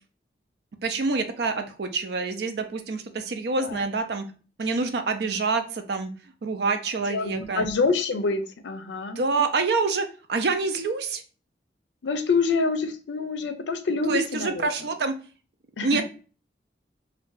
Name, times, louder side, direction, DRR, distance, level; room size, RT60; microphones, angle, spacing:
voice 1, 0.8-4.3 4.6-6.1 6.4-7.7 9.2-11.2 14.1-15.1 15.8-16.0, right 4 dB, 65° right, 7 dB, 0.4 m, -26 dB
voice 2, 7.1-9.2 12.0-14.7 15.8-16.0, left 4 dB, 90° left, 9 dB, 0.5 m, -26 dB
2.6 x 2.2 x 3.7 m, 0.37 s
head